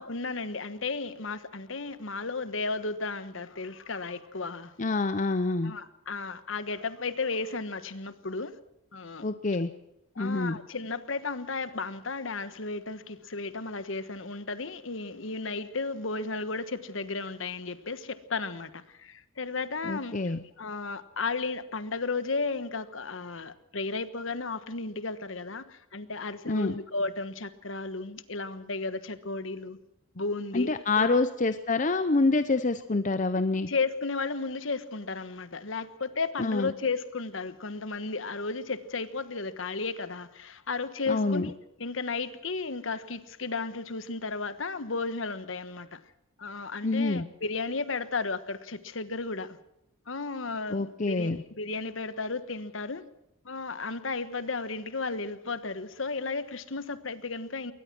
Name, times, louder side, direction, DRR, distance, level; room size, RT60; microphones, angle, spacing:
voice 1, 0.0-4.7 5.6-8.5 8.9-9.2 10.1-20.2 20.6-29.8 30.1-30.7 31.0-31.2 33.7-41.5 41.8-46.0 46.4-49.6 50.1-51.3 51.6-53.0 53.4-57.7, left 3 dB, 65° left, 13 dB, 1.3 m, -34 dB
voice 2, 4.8-5.7 9.2-9.7 10.2-10.6 19.8-20.4 26.5-26.8 30.5-33.7 36.4-36.7 41.1-41.5 46.8-47.3 50.7-51.4, left 3 dB, 40° left, 11 dB, 0.7 m, -27 dB
22.5 x 19.0 x 6.1 m, 0.82 s
head